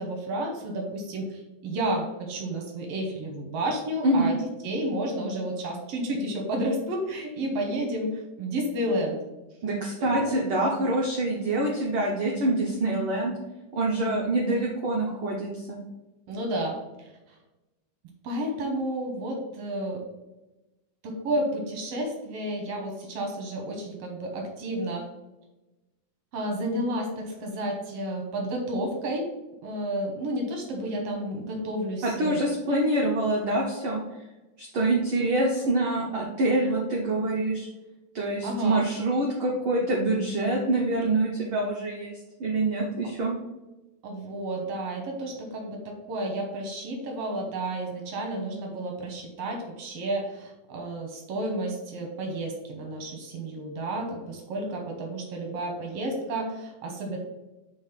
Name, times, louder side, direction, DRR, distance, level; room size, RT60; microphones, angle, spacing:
voice 1, 0.0-4.4 4.6-9.2 10.0-10.4 14.3-14.6 16.3-17.1 18.2-20.0 21.0-25.1 26.3-29.3 29.6-32.4 38.4-38.8 44.0-57.2, right 1 dB, 65° right, 1 dB, 1.6 m, -31 dB
voice 2, 4.0-4.3 9.6-13.3 13.7-15.8 32.0-34.0 34.6-37.7 38.1-42.1 42.4-43.3, right 2 dB, 85° right, -2 dB, 1.2 m, -25 dB
5.3 x 3.6 x 5.7 m, 1.0 s
omnidirectional pair, 3.7 m